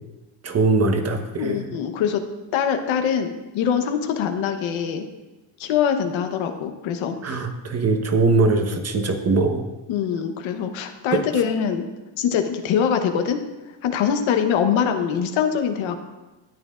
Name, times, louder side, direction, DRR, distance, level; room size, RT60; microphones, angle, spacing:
voice 1, 0.4-1.7 7.2-9.6 11.1-11.2, right 3 dB, 35° right, 5 dB, 1.1 m, -21 dB
voice 2, 1.4-2.2 2.5-5.1 5.6-7.4 9.9-11.8 12.2-13.4 13.8-15.9, left 8 dB, 85° left, 6 dB, 1.1 m, -23 dB
13.5 x 8.9 x 2.5 m, 1.1 s
cardioid pair, 105°, 45 cm